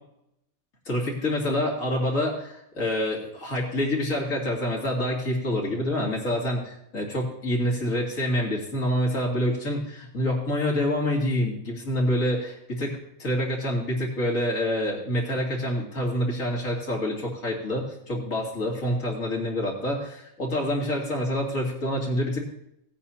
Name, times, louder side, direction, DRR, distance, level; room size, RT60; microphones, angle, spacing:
voice 1, 0.9-22.4, left 1 dB, 80° left, -2 dB, 3.1 m, -27 dB
18.0 x 8.9 x 2.9 m, 0.78 s
omnidirectional pair, 1.4 m